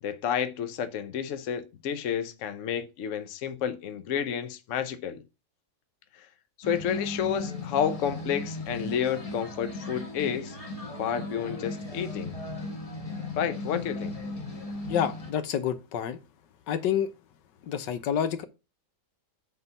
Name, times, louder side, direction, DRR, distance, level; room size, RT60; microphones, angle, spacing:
voice 1, 0.0-5.2 6.2-6.3 6.6-10.6 11.0-12.3 13.4-14.2, left 8 dB, 55° left, 1.0 m, -30 dB
sound 1, 6.6-15.3, left 2 dB, 25° left, 1.0 m, -36 dB
voice 2, 14.9-16.2 16.7-17.1 17.7-18.4, left 9 dB, 90° left, 1.5 m, -28 dB
8.0 x 3.8 x 5.5 m
omnidirectional pair, 1.8 m